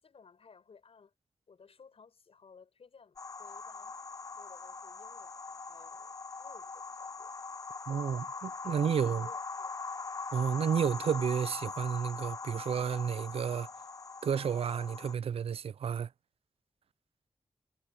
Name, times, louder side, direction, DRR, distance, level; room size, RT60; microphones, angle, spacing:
voice 1, 0.0-1.1 1.5-4.0 4.4-7.3 7.9-8.4 8.7-9.7, left 5 dB, 85° left, 7.1 m, -58 dB
sound 1, 3.2-15.1, left 4 dB, 35° left, 0.4 m, -42 dB
voice 2, 7.9-9.3 10.3-13.7 14.2-16.1, right 7 dB, 85° right, 0.4 m, -31 dB
wide cardioid pair, 120°, 10 cm